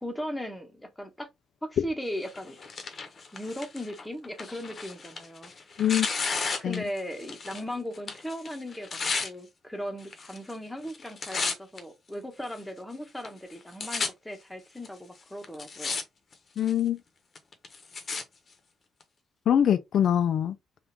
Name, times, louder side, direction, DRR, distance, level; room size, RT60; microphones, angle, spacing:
voice 1, 0.0-1.3 1.6-2.6 3.3-5.5 6.6-16.0, equal, 5° left, 1.0 m, -37 dB
Tearing, 2.2-7.7 7.9-9.3 10.0-10.5 10.8-11.8 12.4-12.5 13.2-13.3 13.5-14.1 14.8-14.9 15.4-16.0 16.3-16.8 17.3-18.2 19.0-19.1, left 4 dB, 45° left, 0.8 m, -33 dB
voice 2, 16.6-17.0 19.5-20.5, left 10 dB, 65° left, 0.3 m, -23 dB
3.5 x 2.4 x 2.8 m
cardioid pair, 90°, 0 cm